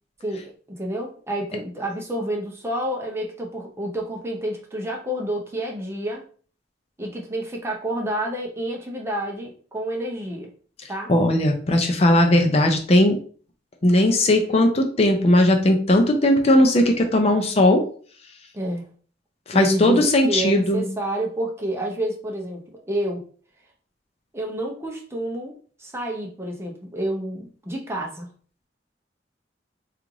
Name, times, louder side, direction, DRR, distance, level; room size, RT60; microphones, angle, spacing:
voice 1, 0.2-6.2 7.0-10.5 10.9-11.1 18.5-18.9 19.5-23.2 24.3-28.3, right 1 dB, 15° right, 0 dB, 0.6 m, -29 dB
voice 2, 11.1-13.2 13.8-17.8 19.5-20.9, left 1 dB, 35° left, 3 dB, 0.5 m, -18 dB
3.1 x 2.4 x 3.8 m, 0.43 s
head